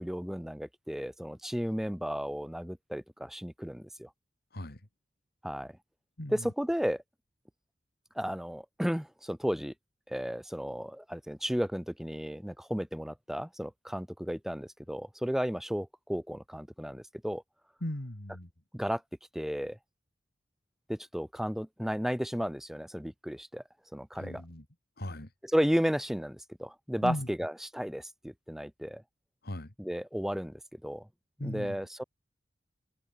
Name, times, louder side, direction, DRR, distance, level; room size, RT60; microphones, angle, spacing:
voice 1, 0.0-4.1 5.4-5.7 6.3-7.0 8.2-9.7 10.1-17.4 18.7-19.0 19.3-19.8 20.9-23.6 23.9-24.4 25.5-29.0 29.8-31.1 31.4-32.0, equal, ahead, 0.9 m, -33 dB
voice 2, 6.2-6.5 17.8-18.5 24.2-24.7 25.0-25.3 27.0-27.3 29.4-29.7 31.4-31.8, left 1 dB, 60° left, 2.6 m, -37 dB
head